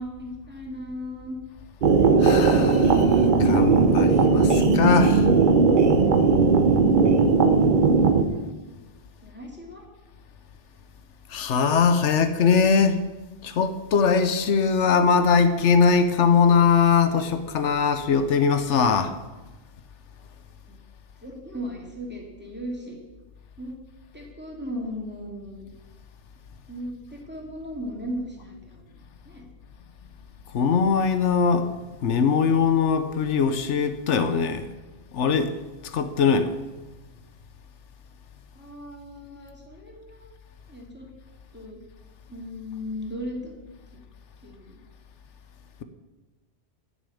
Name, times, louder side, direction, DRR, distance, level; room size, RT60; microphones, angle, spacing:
voice 1, 0.0-1.4 8.1-8.6 9.2-9.8 20.7-20.8 21.2-23.0 23.6-23.7 24.1-25.7 26.7-28.9 29.2-29.4 38.5-40.3 40.7-41.1 41.5-41.8 42.3-43.5 43.9-44.0 44.4-44.8, equal, 10° right, 2.4 m, -37 dB
sound 1, 1.8-8.2, right 4 dB, 50° right, 0.9 m, -18 dB
voice 2, 2.2-5.3 11.3-13.0 13.4-19.1 30.5-31.7 32.0-34.7 35.1-35.5 35.8-36.6, left 5 dB, 85° left, 1.1 m, -21 dB
10.5 x 6.3 x 8.5 m
omnidirectional pair, 1.2 m